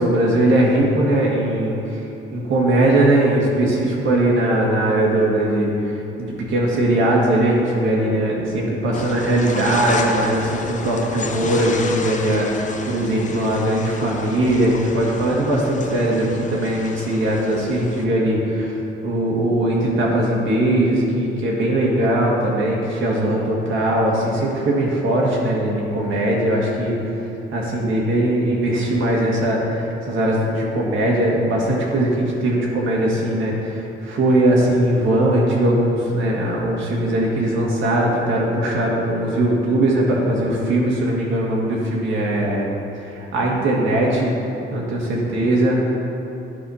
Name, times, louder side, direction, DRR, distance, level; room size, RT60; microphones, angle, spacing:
voice 1, 0.0-2.0 2.3-18.7 19.0-27.0 27.5-42.7 43.0-46.0, right 1 dB, 75° right, -3 dB, 1.9 m, -20 dB
sound 1, 8.9-18.0, left 4 dB, 40° left, 0.7 m, -32 dB
11.0 x 5.3 x 4.2 m, 2.9 s
cardioid pair, 90°, 20 cm